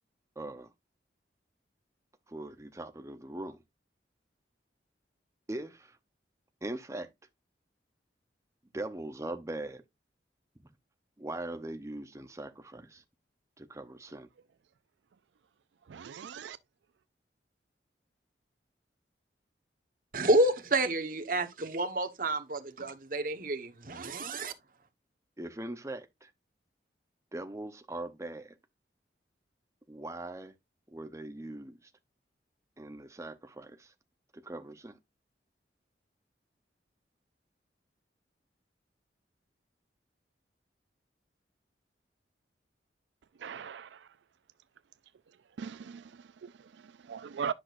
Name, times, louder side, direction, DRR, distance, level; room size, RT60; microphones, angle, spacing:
voice 1, 0.4-0.7 2.3-3.6 5.5-6.0 6.6-7.1 8.7-9.8 10.6-10.7 11.2-13.0 13.6-14.3 25.4-26.3 27.3-28.6 29.9-30.5 30.9-31.9 32.8-33.9 34.3-35.0, right 1 dB, 15° right, 0.7 m, -41 dB
voice 2, 15.9-16.6 43.4-44.1 45.6-47.5, right 7 dB, 80° right, 0.4 m, -40 dB
voice 3, 20.1-24.5, right 1 dB, 50° right, 1.1 m, -29 dB
10.0 x 6.0 x 2.5 m
head